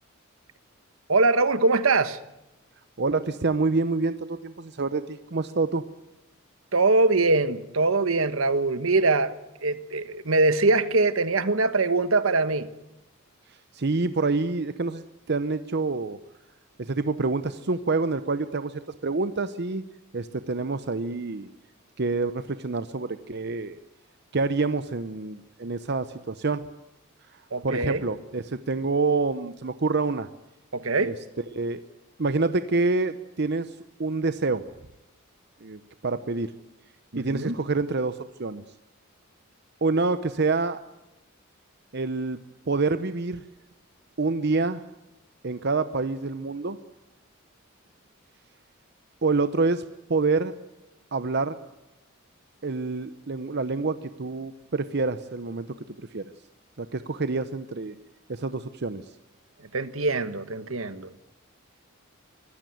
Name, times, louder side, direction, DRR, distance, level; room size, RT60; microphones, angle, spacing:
voice 1, 1.1-2.2 6.7-9.3 9.6-12.7 27.5-28.0 30.7-31.1 37.1-37.6 59.7-61.1, right 3 dB, 75° right, 1.3 m, -23 dB
voice 2, 3.0-5.8 13.7-16.2 16.8-19.8 20.1-21.5 22.0-23.8 24.3-26.7 27.6-30.3 31.0-31.1 31.5-31.8 32.2-34.6 35.6-36.5 37.2-38.6 39.8-40.8 41.9-43.4 44.2-44.8 45.4-46.8 49.2-49.8 50.1-50.5 51.1-51.5 52.6-55.7 56.1-56.2 56.8-58.0 58.3-59.0, right 3 dB, 55° right, 0.8 m, -27 dB
24.0 x 15.5 x 9.2 m
head